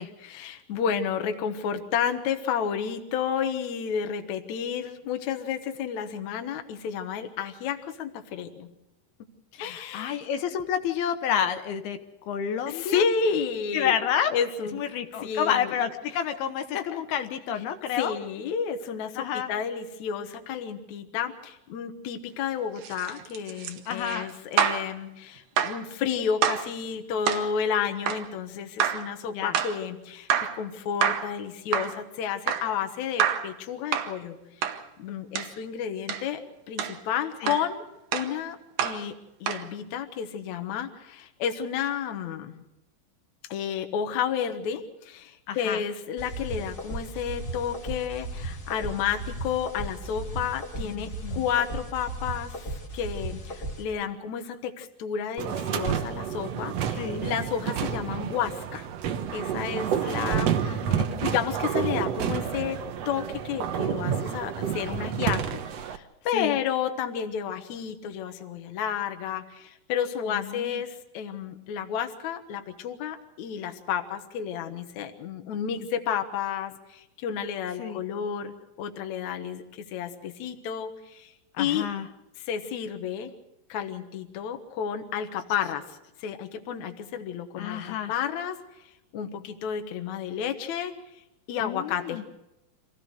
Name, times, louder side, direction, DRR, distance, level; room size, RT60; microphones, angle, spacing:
voice 1, 0.2-8.7 9.6-10.2 12.7-13.9 14.3-14.8 15.2-15.7 16.7-17.0 18.0-34.4 35.0-36.4 36.7-37.8 38.1-39.1 39.4-42.6 43.5-58.9 59.3-81.3 81.6-81.9 82.4-83.3 83.7-85.8 86.2-88.6 89.1-90.9 91.5-92.2, left 8 dB, 60° left, 6 dB, 2.2 m, -31 dB
voice 2, 9.5-12.0 12.3-13.0 13.7-14.3 14.7-18.1 19.2-19.5 23.9-24.3 29.3-29.6 37.4-37.5 45.5-45.8 50.8-51.4 57.0-57.3 60.0-61.0 66.3-66.6 70.3-70.8 77.8-78.0 81.6-82.1 87.6-88.1 91.6-92.2, left 8 dB, 80° left, 8 dB, 2.9 m, -30 dB
sound 1, 22.8-24.9 25.6-25.8 26.4-26.7 27.3-27.5 28.1-28.3 28.8-29.1 29.6-29.8 30.3-30.6 31.0-31.4 31.7-32.0 32.5-32.7 33.2-33.5 33.9-34.2 34.6-34.8 35.4-35.5 36.1-36.3 36.8-37.0 37.5-37.7 38.1-38.3 38.8-39.0 39.5-39.7, right 9 dB, 65° right, 2.4 m, -27 dB
sound 2, 46.2-53.8, right 2 dB, 30° left, 1.8 m, -36 dB
sound 3, 55.4-66.0, right 8 dB, 85° right, 1.4 m, -29 dB
26.0 x 16.5 x 6.5 m, 0.89 s
omnidirectional pair, 4.5 m